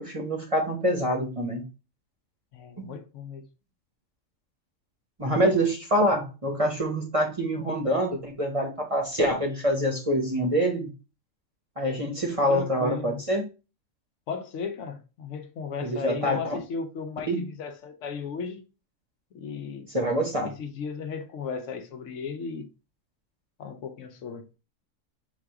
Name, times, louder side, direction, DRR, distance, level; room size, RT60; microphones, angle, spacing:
voice 1, 0.0-1.6 2.8-2.9 5.2-10.9 11.8-13.4 15.8-16.4 17.3-17.4 19.9-20.5, equal, 30° right, 0.8 m, -25 dB
voice 2, 2.5-3.5 12.5-13.2 14.3-18.6 19.3-19.9 20.4-22.7 23.6-24.6, left 5 dB, 70° left, 0.9 m, -36 dB
4.0 x 2.4 x 4.6 m
omnidirectional pair, 1.3 m